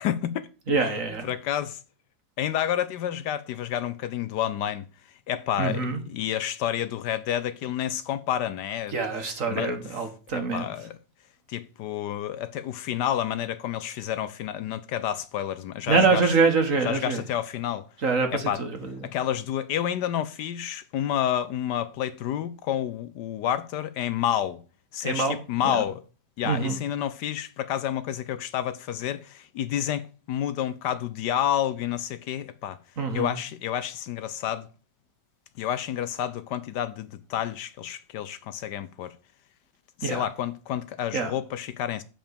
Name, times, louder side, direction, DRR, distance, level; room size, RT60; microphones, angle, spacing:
voice 1, 0.0-0.5 1.2-1.8 2.4-4.9 5.3-9.0 9.5-9.7 10.3-11.0 11.5-16.3 16.8-17.9 18.3-18.6 19.0-24.6 24.9-26.0 26.4-32.8 33.1-34.7 35.6-39.1 40.0-42.0, left 10 dB, 75° left, 1.2 m, -29 dB
voice 2, 0.7-1.3 5.6-6.0 8.9-10.7 15.9-17.2 18.0-19.1 25.0-25.3 25.6-25.8 26.4-26.8 33.0-33.4 40.0-40.2 41.1-41.3, right 4 dB, 50° right, 1.6 m, -25 dB
7.5 x 5.2 x 6.8 m
omnidirectional pair, 2.0 m